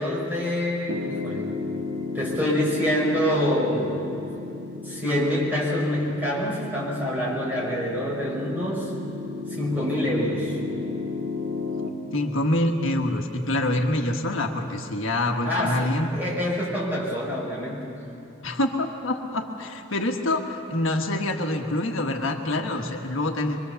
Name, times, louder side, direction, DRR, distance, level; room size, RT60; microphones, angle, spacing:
voice 1, 0.0-1.4 2.1-4.2 4.8-8.9 9.5-10.6 15.4-17.9, equal, 10° right, -5 dB, 5.5 m, -26 dB
Piano, 0.9-11.9, left 3 dB, 85° right, 2.1 m, -34 dB
voice 2, 12.1-16.1 18.4-23.6, left 1 dB, 75° left, 3 dB, 1.4 m, -26 dB
24.0 x 23.0 x 7.0 m, 2.9 s
head